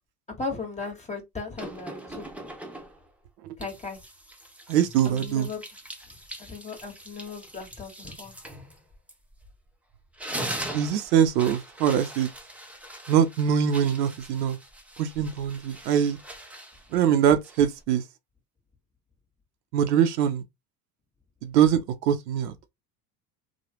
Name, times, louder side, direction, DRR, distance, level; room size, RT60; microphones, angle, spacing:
voice 1, 0.4-2.2 3.6-4.0 5.0-5.6 6.5-8.3, left 4 dB, 15° left, 1.4 m, -36 dB
sound 1, 1.6-3.1 3.6-9.7 10.0-17.8, right 1 dB, 5° right, 0.6 m, -41 dB
voice 2, 4.7-5.5 10.7-12.3 13.1-14.6 15.0-16.2 16.9-18.0 19.7-20.4 21.4-21.8 22.1-22.7, right 9 dB, 80° right, 0.7 m, -23 dB
3.0 x 2.2 x 2.9 m
hypercardioid pair, 90°, 47 cm